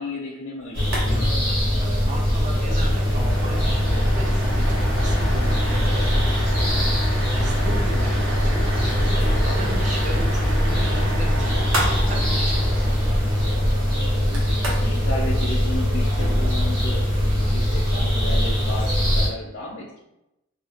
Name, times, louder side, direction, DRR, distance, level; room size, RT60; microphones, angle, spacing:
voice 1, 0.0-1.4 7.4-7.8 13.8-19.9, left 2 dB, 55° left, -4 dB, 0.5 m, -34 dB
sound 1, 0.7-19.3, equal, 60° right, 1.2 m, -21 dB
sound 2, 0.8-1.1 1.3-1.4 1.8-1.9 2.3-15.0, equal, 85° right, 0.8 m, -31 dB
voice 2, 1.8-6.4 7.3-12.7, right 1 dB, 35° right, 1 dB, 0.4 m, -37 dB
2.8 x 2.2 x 2.8 m, 0.88 s
head